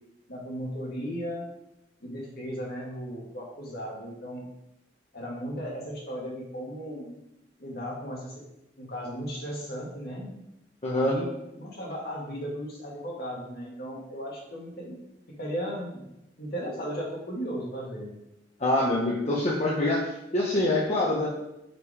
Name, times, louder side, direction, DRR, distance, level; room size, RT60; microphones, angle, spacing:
voice 1, 0.3-1.4 2.0-4.5 5.1-7.2 7.6-8.4 8.8-10.3 10.9-11.3 11.6-15.0 15.3-16.1 16.4-18.1, equal, 60° left, -2 dB, 2.0 m, -36 dB
voice 2, 10.8-11.1 18.6-21.3, left 1 dB, 40° left, -4 dB, 1.0 m, -25 dB
5.4 x 5.1 x 4.9 m, 0.88 s
head